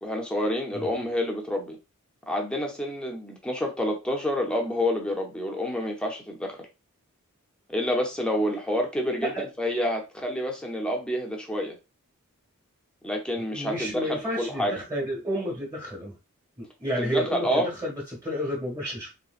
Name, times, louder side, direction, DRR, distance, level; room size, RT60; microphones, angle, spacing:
voice 1, 0.0-1.8 2.3-6.6 7.7-11.8 13.0-14.8 17.0-17.7, left 1 dB, 5° left, 1 dB, 0.6 m, -28 dB
voice 2, 13.4-16.1 16.6-19.1, equal, 15° right, -3 dB, 1.1 m, -31 dB
3.2 x 3.0 x 2.4 m, 0.28 s
head